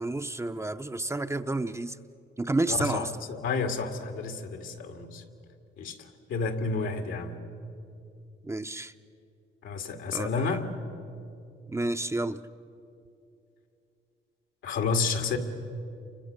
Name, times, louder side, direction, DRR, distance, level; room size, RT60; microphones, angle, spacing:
voice 1, 0.0-2.0 2.4-3.1 8.4-8.9 10.1-10.5 11.7-12.4, right 2 dB, 15° right, 9 dB, 0.7 m, -30 dB
voice 2, 2.7-5.2 5.8-6.0 6.3-7.4 9.6-10.6 14.6-15.4, left 4 dB, 80° left, 5 dB, 2.2 m, -30 dB
29.0 x 25.0 x 6.6 m, 2.7 s
cardioid pair, 90°, 20 cm